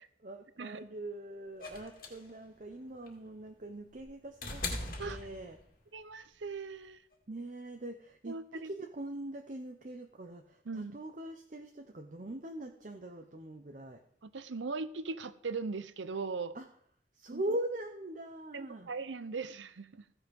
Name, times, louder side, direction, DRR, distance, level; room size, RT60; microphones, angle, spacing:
voice 1, 0.0-5.6 7.3-14.0 16.5-16.7 17.1-18.9, right 1 dB, 45° right, 5 dB, 0.7 m, -42 dB
sound 1, 1.6-5.9 7.1-7.2, left 2 dB, 50° left, 2.1 m, -41 dB
voice 2, 5.9-7.0 8.2-8.7 10.7-10.9 14.2-16.5 17.3-17.4 18.5-20.1, right 4 dB, 90° right, 14 dB, 0.7 m, -39 dB
15.0 x 5.6 x 5.2 m, 0.68 s
head